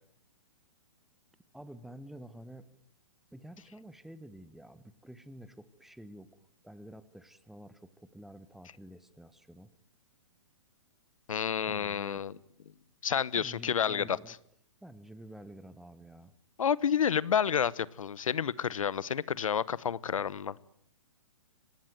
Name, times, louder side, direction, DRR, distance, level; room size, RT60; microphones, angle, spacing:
voice 1, 1.5-2.7 3.3-6.3 6.6-9.7 11.7-12.2 13.3-14.3 14.8-16.3, right 1 dB, ahead, 15 dB, 1.0 m, -49 dB
voice 2, 11.3-12.3 13.0-14.2 16.6-20.6, left 8 dB, 85° left, 23 dB, 1.0 m, -30 dB
25.5 x 19.5 x 9.2 m, 0.69 s
hypercardioid pair, 145°, 17 cm